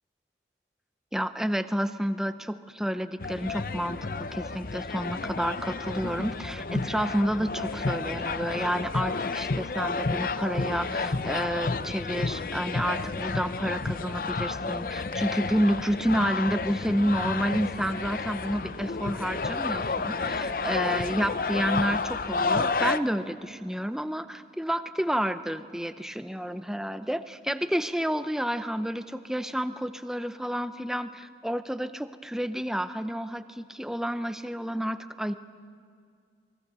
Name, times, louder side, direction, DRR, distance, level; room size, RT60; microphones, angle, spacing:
voice 1, 1.1-4.0 4.3-35.3, equal, 5° right, 10 dB, 0.6 m, -30 dB
sound 1, 3.2-23.0, left 4 dB, 50° left, 0.6 m, -31 dB
28.0 x 21.5 x 6.9 m, 2.2 s
head